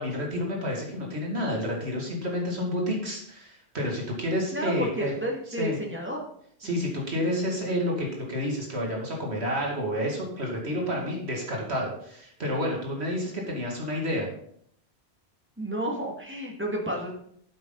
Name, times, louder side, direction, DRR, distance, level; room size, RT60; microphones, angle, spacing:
voice 1, 0.0-5.2 5.6-5.8 6.6-14.3, equal, 80° right, -1 dB, 2.7 m, -30 dB
voice 2, 4.5-6.2 7.3-7.4 15.6-17.1, equal, 10° right, -1 dB, 2.2 m, -31 dB
9.5 x 8.1 x 4.1 m, 0.66 s
omnidirectional pair, 1.1 m